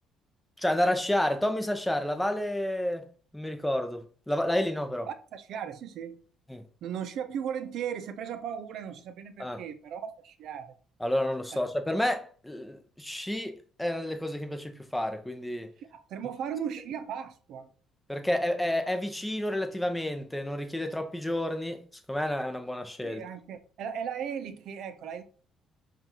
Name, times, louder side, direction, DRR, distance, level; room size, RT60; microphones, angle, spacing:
voice 1, 0.6-3.1 3.3-5.1 6.5-6.6 9.4-9.6 11.0-15.7 18.1-21.8 22.1-23.2, left 1 dB, 5° left, 0.6 m, -30 dB
voice 2, 5.1-6.2 6.8-10.7 15.8-17.7 23.0-25.2, right 8 dB, 70° right, 0.5 m, -37 dB
5.4 x 2.4 x 3.0 m
cardioid pair, 90°, 0 cm